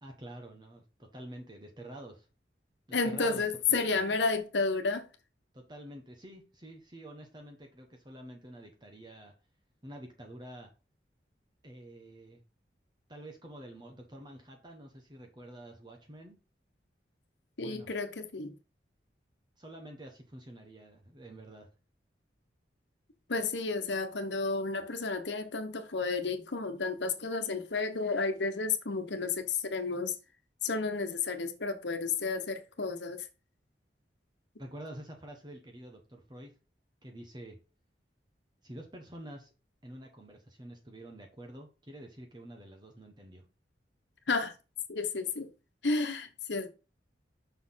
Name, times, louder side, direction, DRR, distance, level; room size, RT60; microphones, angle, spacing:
voice 1, 0.0-2.3 3.0-4.1 5.5-9.3 9.8-10.7 11.6-12.4 13.1-16.4 17.6-17.9 19.6-21.7 34.6-36.5 37.0-37.6 38.6-39.5 39.8-43.4, right 1 dB, 25° right, 1.1 m, -48 dB
voice 2, 2.9-5.1 17.6-18.5 23.3-30.2 30.6-33.3 44.3-44.5 44.9-45.5 45.8-46.7, left 4 dB, 80° left, 1.1 m, -31 dB
5.8 x 4.4 x 5.7 m
head